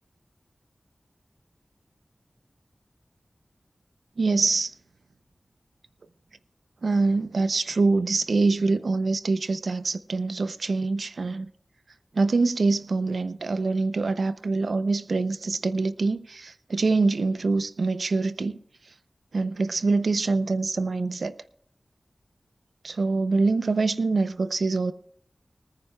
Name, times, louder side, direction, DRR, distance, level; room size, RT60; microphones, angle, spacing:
voice 1, 4.2-4.7 6.8-11.5 12.1-18.6 19.3-21.4 22.8-24.9, right 3 dB, 90° right, 0.6 m, -24 dB
25.0 x 9.8 x 2.3 m
wide cardioid pair, 80°, 0 cm